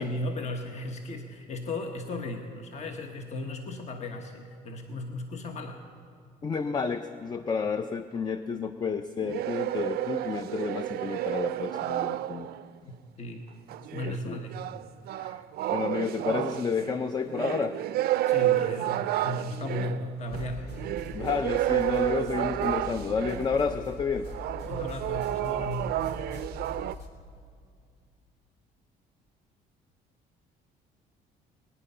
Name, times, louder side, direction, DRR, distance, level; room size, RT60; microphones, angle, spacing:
voice 1, 0.0-5.8 12.8-13.5 13.9-14.6 18.2-20.7 24.6-26.0, left 2 dB, 40° left, 4 dB, 1.1 m, -36 dB
voice 2, 6.4-12.5 14.0-14.4 15.2-15.4 15.7-17.8 21.1-24.3, left 5 dB, 25° left, 10 dB, 0.5 m, -30 dB
sound 1, 9.2-12.7 13.7-23.6 24.3-26.9, right 14 dB, 65° right, 0.4 m, -30 dB
sound 2, 20.3-27.1, left 2 dB, 75° left, 2.0 m, -42 dB
22.0 x 10.0 x 5.6 m, 2.2 s
cardioid pair, 110°, 17 cm